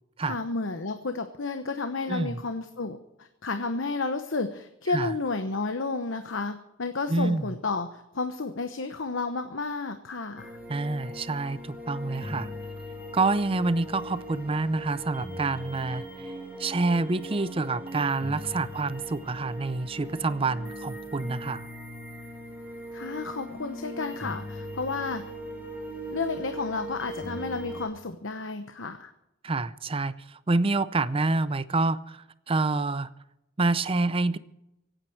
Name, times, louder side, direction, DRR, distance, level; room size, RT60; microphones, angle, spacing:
voice 1, 0.2-10.6 22.9-25.2 26.1-29.1, left 3 dB, 75° left, 8 dB, 1.0 m, -32 dB
voice 2, 2.1-2.4 4.9-5.1 7.1-7.4 10.7-12.5 13.1-16.3 16.6-21.7 29.4-33.1 33.6-34.4, right 3 dB, 30° right, 15 dB, 0.5 m, -27 dB
sound 1, 10.4-27.9, equal, 10° right, 3.0 m, -39 dB
25.0 x 9.1 x 4.6 m, 0.88 s
head